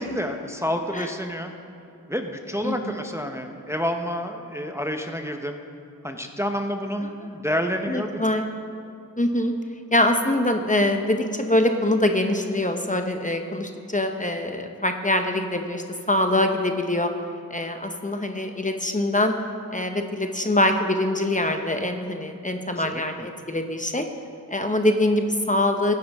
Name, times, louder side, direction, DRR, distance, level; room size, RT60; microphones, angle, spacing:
voice 1, 0.0-1.5 2.1-5.6 6.0-8.2 22.7-23.3, equal, 5° right, 4 dB, 0.8 m, -29 dB
voice 2, 7.9-8.4 9.2-9.5 9.9-17.1 17.5-19.3 19.7-24.1 24.5-25.9, left 1 dB, 20° left, 5 dB, 0.9 m, -23 dB
15.5 x 9.4 x 3.6 m, 2.8 s
cardioid pair, 45°, 36 cm